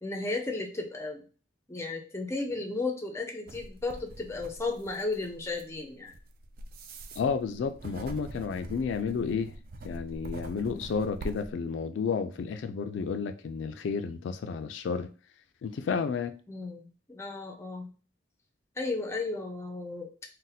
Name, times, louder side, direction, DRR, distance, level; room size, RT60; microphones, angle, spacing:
voice 1, 0.0-1.2 1.7-6.1 16.5-17.9 18.8-20.1, left 3 dB, 15° left, 0.5 m, -34 dB
sound 1, 3.5-11.5, right 1 dB, 50° right, 0.4 m, -44 dB
voice 2, 7.2-9.5 9.8-15.1 15.6-16.3, left 5 dB, 75° left, 0.3 m, -31 dB
2.6 x 2.1 x 3.9 m
head